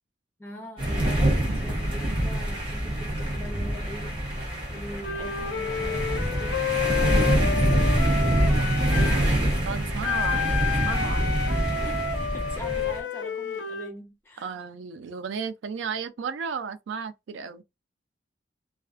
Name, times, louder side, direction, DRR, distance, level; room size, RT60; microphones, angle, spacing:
voice 1, 0.4-4.1 4.7-7.8 11.8-14.5, left 1 dB, 10° left, 0.7 m, -42 dB
sound 1, 0.8-13.0, right 1 dB, 25° right, 0.9 m, -25 dB
Wind instrument woodwind instrument, 5.0-9.2 10.0-13.9, left 6 dB, 85° left, 0.4 m, -30 dB
voice 2, 8.6-10.6 10.8-11.4 14.4-17.6, right 6 dB, 85° right, 0.3 m, -34 dB
2.4 x 2.3 x 2.3 m
head